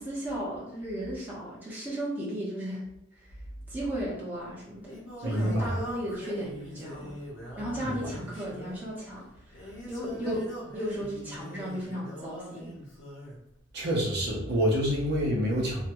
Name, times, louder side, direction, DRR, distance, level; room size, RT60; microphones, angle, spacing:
voice 1, 0.0-2.8 3.2-3.3 3.7-7.1 7.6-10.4 10.7-12.7, equal, 10° right, -7 dB, 1.0 m, -35 dB
Singing, 4.3-13.4, equal, 90° left, 1.0 m, -43 dB
voice 2, 5.2-5.8 7.8-8.1 10.2-10.4 13.7-15.9, equal, 60° right, -2 dB, 0.8 m, -27 dB
2.8 x 2.3 x 2.9 m, 0.81 s
head